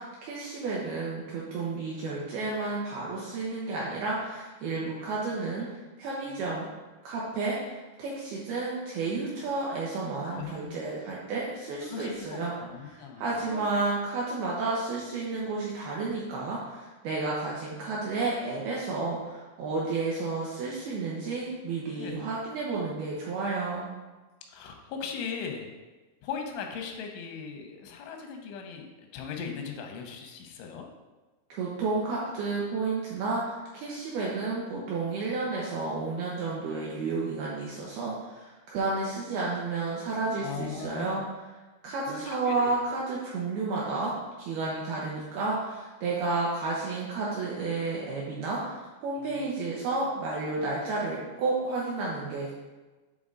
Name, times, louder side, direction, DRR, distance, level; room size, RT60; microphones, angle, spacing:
voice 1, 0.0-5.7 6.0-6.7 7.0-12.5 12.9-23.9 31.5-41.5 41.8-44.1 44.4-52.5, right 3 dB, 80° right, -5 dB, 2.3 m, -31 dB
voice 2, 10.2-10.7 11.9-13.6 22.0-22.1 24.5-25.7 26.2-28.9 29.1-30.9 40.4-41.2 42.1-42.2 42.4-43.0 49.2-49.5, left 6 dB, 90° left, 3 dB, 3.2 m, -39 dB
8.4 x 3.6 x 3.8 m, 1.2 s
omnidirectional pair, 5.3 m